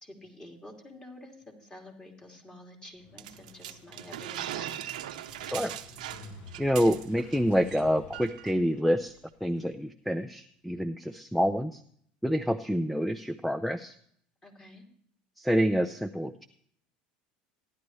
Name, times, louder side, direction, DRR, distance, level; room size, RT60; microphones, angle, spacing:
voice 1, 0.0-5.0 14.4-14.8, left 1 dB, 20° left, 1 dB, 2.9 m, -49 dB
Motorcycle, 2.9-9.7, left 2 dB, 65° left, 3.6 m, -51 dB
sound 1, 3.2-7.4 7.7-7.8 8.1-8.5, right 12 dB, 85° right, 0.8 m, -39 dB
voice 2, 6.6-9.1 9.4-11.8 12.2-13.9 15.4-16.5, equal, ahead, 7 dB, 0.5 m, -27 dB
15.0 x 11.0 x 3.2 m, 0.63 s
supercardioid pair, 95°, 4 cm